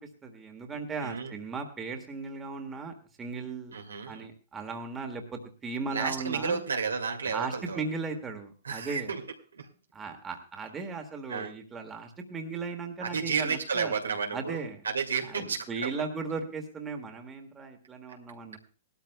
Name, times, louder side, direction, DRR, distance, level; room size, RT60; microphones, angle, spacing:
voice 1, 0.0-3.8 4.1-6.6 7.3-9.1 9.9-13.9 14.3-14.8 15.3-18.6, right 4 dB, 15° right, 4 dB, 1.7 m, -37 dB
voice 2, 1.0-1.3 3.7-4.2 5.9-7.8 8.6-9.2 9.5-9.7 11.3-11.5 13.0-15.9, right 5 dB, 85° right, 3 dB, 2.1 m, -32 dB
19.5 x 12.5 x 2.3 m, 0.36 s
hypercardioid pair, 115°, 0 cm